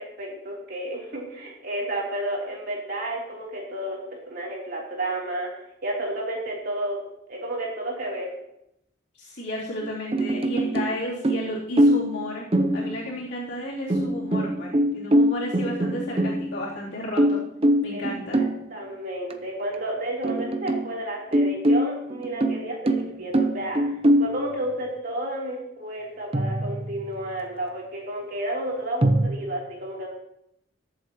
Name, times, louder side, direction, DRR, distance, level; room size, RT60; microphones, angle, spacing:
voice 1, 0.0-5.5 5.8-7.0 7.3-8.3 17.9-18.0 18.4-23.9 24.2-30.1, right 1 dB, 50° right, -3 dB, 3.5 m, -31 dB
voice 2, 9.2-12.5 12.7-17.4 17.8-18.4, equal, 60° left, -8 dB, 3.4 m, -33 dB
sound 1, 9.8-11.0 11.2-12.2 12.5-13.2 13.9-16.7 17.2-18.6 19.3-19.4 19.7-19.8 20.2-20.9 21.3-24.4 26.3-27.1 29.0-29.3, right 1 dB, 30° right, 0.6 m, -23 dB
20.5 x 7.9 x 3.1 m, 0.79 s
head